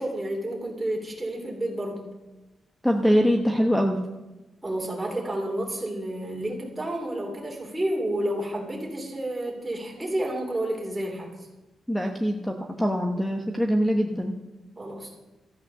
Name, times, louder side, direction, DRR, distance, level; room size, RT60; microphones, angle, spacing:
voice 1, 0.0-2.0 4.6-11.3 14.8-15.2, right 1 dB, 10° right, -2 dB, 3.5 m, -30 dB
voice 2, 2.8-4.0 11.9-14.4, equal, 5° left, 4 dB, 0.9 m, -23 dB
14.0 x 8.7 x 6.8 m, 1.1 s
wide cardioid pair, 135°, 0 cm